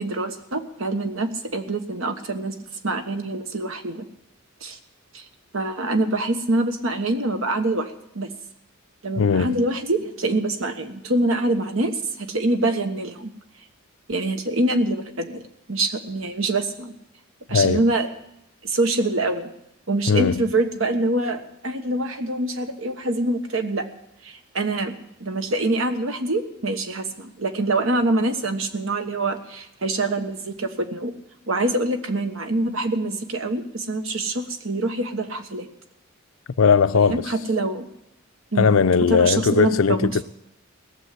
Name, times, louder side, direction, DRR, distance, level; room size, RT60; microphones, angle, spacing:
voice 1, 0.0-2.6 2.8-4.1 4.6-4.8 5.1-5.2 5.5-8.3 9.0-11.9 12.2-13.3 14.1-15.4 15.7-16.9 17.5-18.1 18.6-19.5 19.9-23.8 24.2-24.9 25.2-31.1 31.5-35.7 37.1-37.9 38.5-38.7 39.1-40.2, right 2 dB, 70° right, 1.3 m, -25 dB
voice 2, 9.2-9.6 17.5-17.9 20.1-20.5 36.6-37.2 38.6-40.2, left 5 dB, 70° left, 0.5 m, -18 dB
17.5 x 7.2 x 9.6 m
head